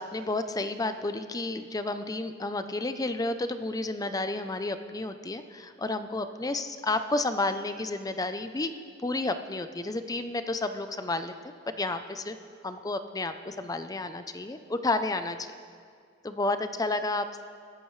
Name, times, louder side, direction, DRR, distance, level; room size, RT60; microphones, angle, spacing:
voice 1, 0.0-8.7 9.0-12.4 12.6-15.5 16.2-17.4, left 2 dB, 20° left, 9 dB, 0.5 m, -31 dB
25.0 x 13.5 x 3.2 m, 2.1 s
head